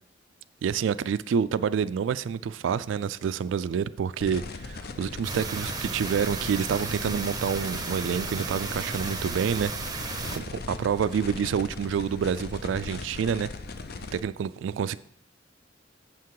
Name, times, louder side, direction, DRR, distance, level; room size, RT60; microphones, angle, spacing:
voice 1, 0.6-13.5 14.1-15.0, right 7 dB, 75° right, 15 dB, 0.3 m, -28 dB
sound 1, 4.2-14.2, left 3 dB, 55° left, 0.5 m, -38 dB
sound 2, 5.2-10.4, right 4 dB, 20° right, 0.6 m, -34 dB
7.6 x 5.9 x 4.7 m, 0.69 s
head